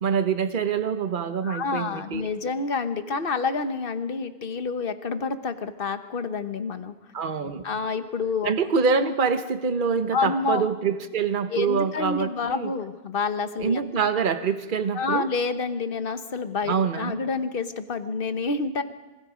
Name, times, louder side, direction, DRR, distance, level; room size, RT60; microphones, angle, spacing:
voice 1, 0.0-2.3 7.1-7.7 8.4-12.7 13.6-15.3 16.7-17.2, right 6 dB, 55° right, 9 dB, 1.2 m, -25 dB
voice 2, 1.4-6.9 7.6-8.5 10.1-10.7 11.5-13.8 14.9-18.8, left 4 dB, 60° left, 9 dB, 1.3 m, -28 dB
25.5 x 23.0 x 5.1 m, 1.1 s
omnidirectional pair, 1.0 m